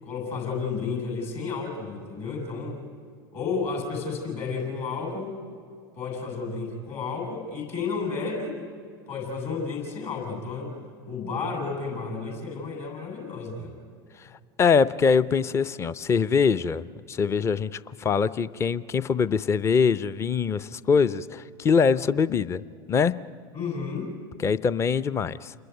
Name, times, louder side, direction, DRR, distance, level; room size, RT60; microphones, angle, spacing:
voice 1, 0.0-2.8 3.3-5.4 6.0-8.6 9.1-10.7 11.1-13.7 23.5-24.1, left 4 dB, 50° left, 3 dB, 7.6 m, -32 dB
voice 2, 14.6-22.6 22.9-23.2 24.4-25.5, left 5 dB, 20° left, 17 dB, 0.6 m, -23 dB
28.5 x 21.5 x 9.6 m, 2.2 s
figure-of-eight pair, 80°, 12 cm